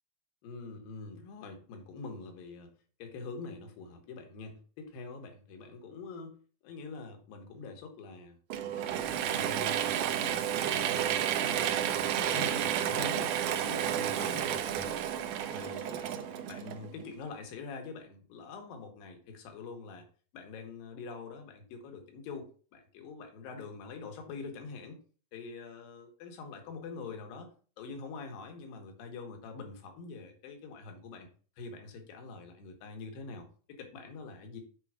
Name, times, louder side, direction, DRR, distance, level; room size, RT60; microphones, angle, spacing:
voice 1, 0.4-2.7 3.0-6.4 6.6-8.4 8.7-9.8 10.1-11.7 12.3-13.4 13.6-15.0 15.5-20.1 20.3-25.0 25.3-27.5 27.8-31.3 31.6-34.6, left 4 dB, 80° left, 4 dB, 3.1 m, -45 dB
Mechanisms / Drill, 8.5-17.1, right 10 dB, 75° right, 1.9 m, -31 dB
6.9 x 4.6 x 4.8 m, 0.41 s
omnidirectional pair, 4.1 m